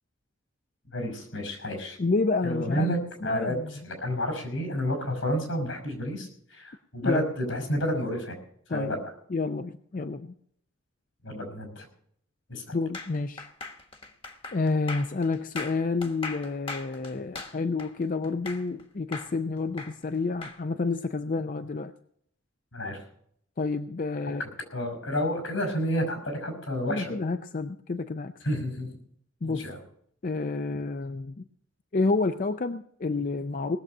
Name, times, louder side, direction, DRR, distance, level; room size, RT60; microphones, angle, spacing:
voice 1, 0.9-2.0 2.4-3.5 3.8-7.2 7.5-8.4 8.7-9.0 11.2-11.8 12.5-12.8 22.7-23.0 24.7-27.2 28.4-28.9 29.4-29.8, equal, 85° left, 5 dB, 5.7 m, -30 dB
voice 2, 2.0-2.9 3.2-3.8 7.0-7.3 8.7-9.0 9.3-10.3 12.7-13.5 14.5-21.9 23.6-24.4 26.9-28.3 29.4-29.7 30.2-31.4 31.9-33.8, left 3 dB, 40° left, 9 dB, 0.5 m, -29 dB
sound 1, 12.9-18.8 19.1-20.6, left 3 dB, 25° left, 1.1 m, -39 dB
19.0 x 7.3 x 6.5 m, 0.67 s
head